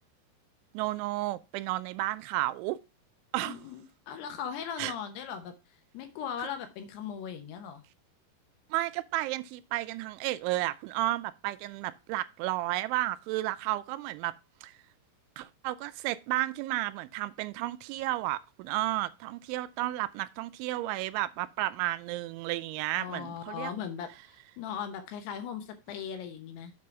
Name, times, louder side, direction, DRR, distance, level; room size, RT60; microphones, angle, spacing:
voice 1, 0.7-2.8 3.3-3.6 4.8-4.9 8.7-14.3 14.6-14.7 15.4-23.7, right 16 dB, 90° right, 3.0 m, -32 dB
voice 2, 3.4-5.5 5.9-7.8 22.9-26.7, left 8 dB, 75° left, 2.8 m, -38 dB
7.6 x 5.5 x 4.6 m
omnidirectional pair, 5.3 m